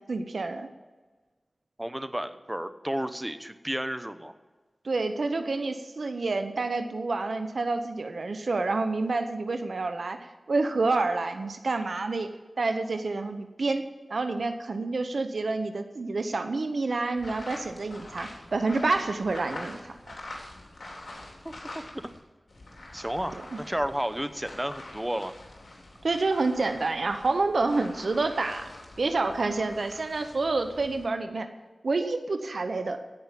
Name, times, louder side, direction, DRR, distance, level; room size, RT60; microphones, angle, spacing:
voice 1, 0.1-0.7 4.8-12.3 12.6-19.9 23.5-23.6 26.0-28.7 29.0-31.5 31.8-33.0, right 3 dB, 85° right, 8 dB, 0.8 m, -28 dB
voice 2, 1.8-4.3 21.7-22.0 22.9-25.3, equal, 15° right, 10 dB, 0.9 m, -32 dB
sound 1, 17.2-22.2 22.5-31.0, left 2 dB, 75° left, 3.2 m, -45 dB
16.5 x 5.6 x 7.5 m, 1.3 s
cardioid pair, 40°, 0 cm